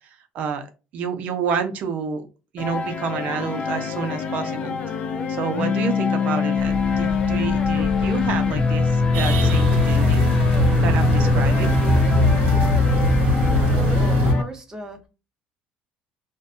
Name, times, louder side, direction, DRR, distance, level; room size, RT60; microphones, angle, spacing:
voice 1, 0.3-0.7 0.9-2.3 2.5-4.7 5.3-10.4 10.8-11.8, right 6 dB, 55° right, 7 dB, 0.6 m, -29 dB
sound 1, 2.6-14.4, left 4 dB, 40° left, 0.4 m, -22 dB
sound 2, 6.6-14.1, left 2 dB, 15° left, 1.2 m, -26 dB
sound 3, 9.1-14.3, right 1 dB, 75° right, 0.9 m, -23 dB
voice 2, 13.7-15.1, right 1 dB, 20° right, 4 dB, 0.7 m, -37 dB
2.6 x 2.2 x 2.4 m, 0.30 s
cardioid pair, 130°, 3 cm